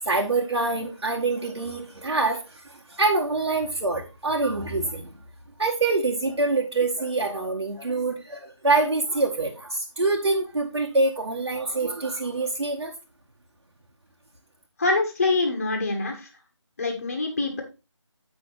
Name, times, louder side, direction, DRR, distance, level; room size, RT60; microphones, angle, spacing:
voice 1, 0.0-5.1 5.6-12.9, right 3 dB, 65° right, 1.8 m, -25 dB
voice 2, 14.8-16.3 16.8-17.6, left 3 dB, 30° left, 1.5 m, -25 dB
7.8 x 6.0 x 3.9 m
figure-of-eight pair, 165°, 16 cm